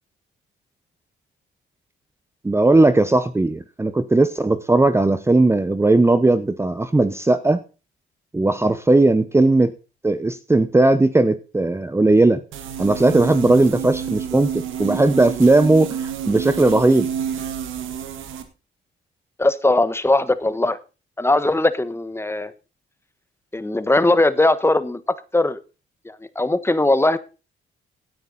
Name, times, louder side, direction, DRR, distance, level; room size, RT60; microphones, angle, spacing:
voice 1, 2.4-7.6 8.3-9.7 10.0-12.4 12.8-17.1, right 2 dB, 15° right, 12 dB, 0.8 m, -17 dB
sound 1, 12.5-18.4, right 8 dB, 80° right, 2.0 m, -29 dB
voice 2, 19.4-20.8 21.2-22.5 23.5-25.6 26.0-27.2, left 2 dB, 10° left, 13 dB, 1.2 m, -19 dB
17.0 x 9.4 x 4.0 m, 0.33 s
cardioid pair, 90°, 20 cm